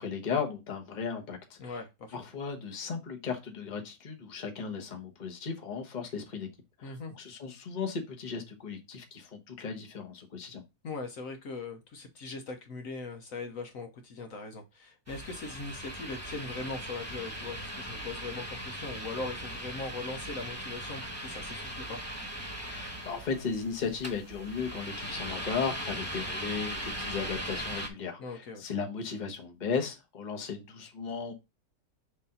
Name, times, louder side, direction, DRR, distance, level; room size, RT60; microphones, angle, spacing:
voice 1, 0.0-1.8 2.1-6.5 6.8-10.6 22.7-31.3, left 5 dB, 30° left, 1.1 m, -36 dB
voice 2, 1.6-2.1 6.8-7.1 10.8-22.0 28.2-28.6, left 3 dB, 65° left, 1.2 m, -40 dB
sound 1, 15.1-27.9, equal, 10° right, 1.2 m, -39 dB
6.6 x 2.7 x 5.5 m
omnidirectional pair, 1.6 m